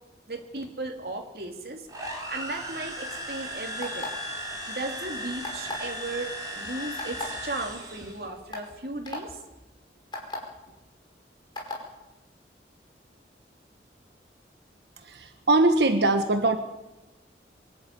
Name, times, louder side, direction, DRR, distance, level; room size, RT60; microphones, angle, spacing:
voice 1, 0.3-4.1 4.7-9.4, right 2 dB, 60° right, 3 dB, 3.2 m, -36 dB
sound 1, 1.9-8.2, equal, 20° right, 5.5 m, -36 dB
sound 2, 3.8-4.3 5.4-5.9 7.0-7.2 8.0-8.1 8.5-8.7 9.1-9.2 10.1-10.4 11.6-11.8, left 2 dB, 25° left, 5.2 m, -34 dB
voice 2, 15.0-16.6, right 2 dB, 75° right, 7 dB, 1.4 m, -22 dB
24.0 x 11.5 x 9.5 m, 1.0 s
head